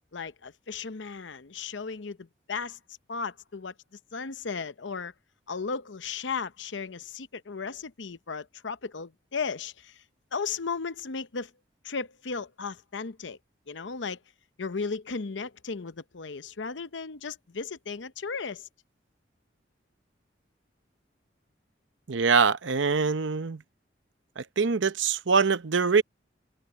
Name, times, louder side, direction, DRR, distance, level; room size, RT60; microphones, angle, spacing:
voice 1, 0.1-2.8 3.1-3.7 4.1-5.1 5.5-10.0 10.3-11.5 11.8-13.4 13.7-14.2 14.6-18.7, left 5 dB, 85° left, 0.8 m, -35 dB
voice 2, 22.1-23.6 24.4-26.0, right 5 dB, 90° right, 0.8 m, -24 dB
head